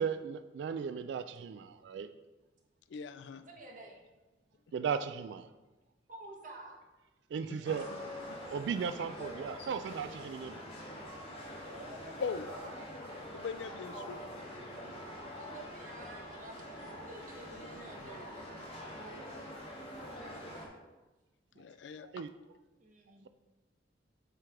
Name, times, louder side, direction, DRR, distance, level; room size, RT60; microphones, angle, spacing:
voice 1, 0.0-2.1 4.7-5.5 7.3-7.9 8.5-10.6 22.0-22.3, right 6 dB, 75° right, 11 dB, 0.3 m, -36 dB
voice 2, 2.9-3.4 7.4-7.6 7.9-8.0 12.2-12.5 13.3-14.2 17.9-18.1 21.6-22.2, left 5 dB, 80° left, 11 dB, 0.4 m, -40 dB
voice 3, 3.4-4.0 6.1-6.8 7.5-7.8 9.0-9.5 11.6-13.0 13.9-14.3 15.3-18.8 22.8-23.3, right 2 dB, 45° right, 0 dB, 1.2 m, -51 dB
sound 1, 7.6-20.7, equal, 35° left, 1.6 m, -45 dB
7.6 x 3.3 x 4.8 m, 1.1 s
head